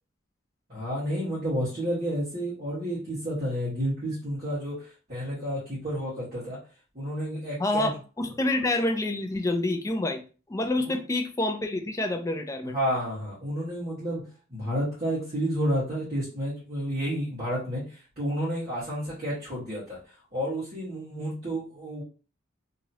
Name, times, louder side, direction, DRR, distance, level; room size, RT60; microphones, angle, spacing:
voice 1, 0.7-6.6 6.9-7.9 10.8-11.0 12.7-14.2 14.5-20.0 20.3-22.0, equal, 40° right, 1.4 m, -30 dB
voice 2, 7.6-10.2 10.5-12.8, left 2 dB, 15° left, 0.4 m, -27 dB
2.9 x 2.8 x 2.8 m
head